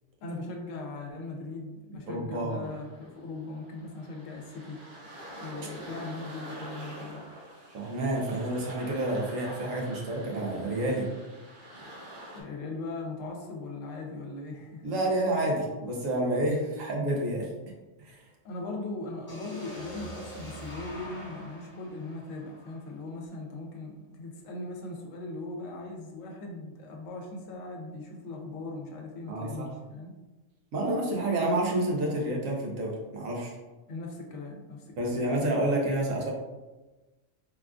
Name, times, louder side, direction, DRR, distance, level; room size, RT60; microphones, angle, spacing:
voice 1, 0.2-4.8 5.4-7.3 12.3-14.8 18.4-30.1 33.9-35.2, left 2 dB, 75° left, 1 dB, 1.0 m, -39 dB
voice 2, 2.1-2.7 7.7-11.1 14.8-17.5 18.0-18.2 29.3-29.7 30.7-33.6 35.0-36.3, right 1 dB, 90° right, -1 dB, 1.1 m, -29 dB
sound 1, 2.6-12.4, right 1 dB, 50° right, 0.7 m, -46 dB
sound 2, 19.3-23.2, equal, 10° left, 0.6 m, -44 dB
3.6 x 2.3 x 2.4 m, 1.2 s
omnidirectional pair, 1.3 m